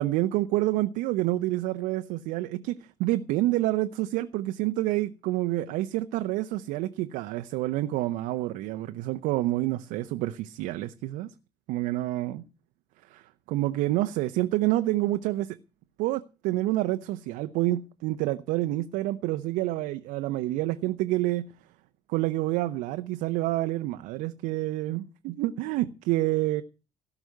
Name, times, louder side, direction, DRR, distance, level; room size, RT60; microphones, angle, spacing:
voice 1, 0.0-11.3 11.7-12.4 13.1-15.6 16.0-21.5 22.1-26.6, right 16 dB, 70° right, 0.9 m, -28 dB
17.0 x 6.0 x 9.3 m
hypercardioid pair, 50°, 14 cm